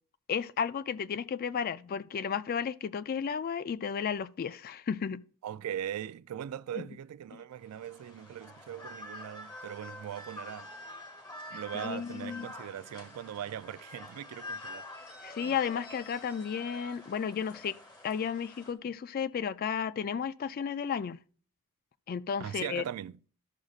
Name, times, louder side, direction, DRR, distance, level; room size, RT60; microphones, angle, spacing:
voice 1, 0.3-5.2 7.3-7.4 11.8-12.5 15.2-17.7 18.0-21.2 22.1-22.8, left 7 dB, 45° left, 0.3 m, -33 dB
voice 2, 5.4-10.7 11.5-14.8 22.4-23.2, right 10 dB, 90° right, 0.3 m, -40 dB
sound 1, 7.6-18.7, left 1 dB, 20° left, 1.1 m, -47 dB
12.0 x 6.3 x 2.4 m
head